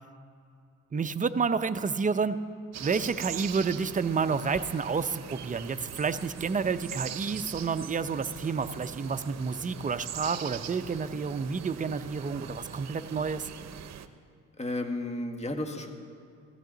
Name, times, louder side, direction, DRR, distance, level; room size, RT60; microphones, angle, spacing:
voice 1, 0.9-2.4 2.8-13.5, right 5 dB, 25° right, 11 dB, 0.6 m, -30 dB
sound 1, 2.7-14.1, right 9 dB, 60° right, 0.8 m, -42 dB
voice 2, 14.6-15.9, left 1 dB, 20° left, 4 dB, 1.6 m, -33 dB
16.0 x 15.0 x 3.9 m, 2.4 s
cardioid pair, 90°, 30 cm